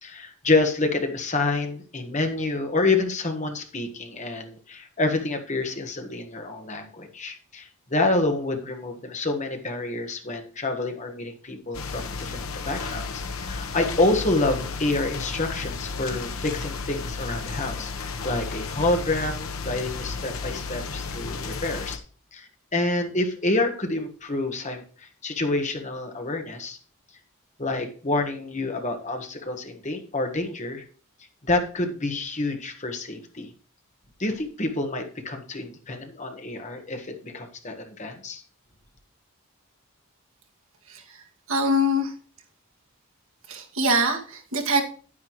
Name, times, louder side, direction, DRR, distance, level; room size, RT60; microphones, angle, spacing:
voice 1, 0.0-22.0 22.3-26.8 27.6-30.8 31.4-33.5 34.2-38.4, left 2 dB, 35° left, 4 dB, 1.5 m, -28 dB
sound 1, 11.7-22.0, left 4 dB, 75° left, 1.1 m, -33 dB
voice 2, 40.9-42.1 43.5-44.8, equal, 70° right, 1 dB, 2.0 m, -24 dB
10.0 x 9.7 x 3.1 m, 0.40 s
head